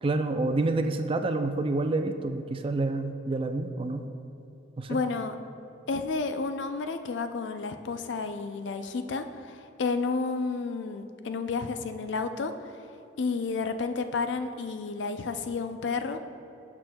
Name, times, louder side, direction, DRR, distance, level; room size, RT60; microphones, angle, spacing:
voice 1, 0.0-4.0 4.8-5.0, right 2 dB, 30° right, 7 dB, 0.4 m, -28 dB
voice 2, 4.9-5.3 5.9-12.5 13.2-16.2, left 4 dB, 75° left, 8 dB, 0.5 m, -31 dB
15.0 x 6.1 x 2.3 m, 2.7 s
head